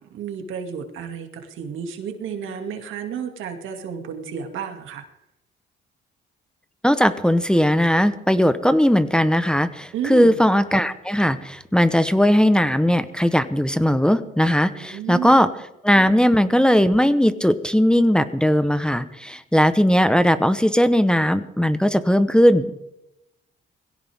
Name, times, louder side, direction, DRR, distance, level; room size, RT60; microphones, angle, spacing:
voice 1, 0.1-5.0 9.9-10.3 14.7-15.5, right 7 dB, 85° right, 5 dB, 2.4 m, -32 dB
voice 2, 6.8-15.5 15.8-22.7, equal, 5° left, 11 dB, 1.0 m, -18 dB
21.5 x 16.5 x 3.6 m, 0.87 s
cardioid pair, 90°, 20 cm